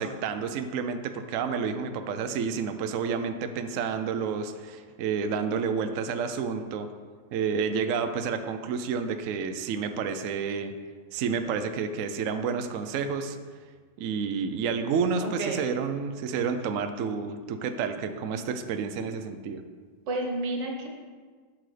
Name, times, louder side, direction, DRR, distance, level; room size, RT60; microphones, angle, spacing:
voice 1, 0.0-6.9 7.3-10.7 11.1-13.4 14.0-19.6, right 6 dB, 65° right, 8 dB, 0.8 m, -30 dB
voice 2, 15.2-15.6 20.1-20.9, right 2 dB, 85° right, 0 dB, 1.9 m, -30 dB
11.5 x 6.1 x 3.3 m, 1.6 s
omnidirectional pair, 1.9 m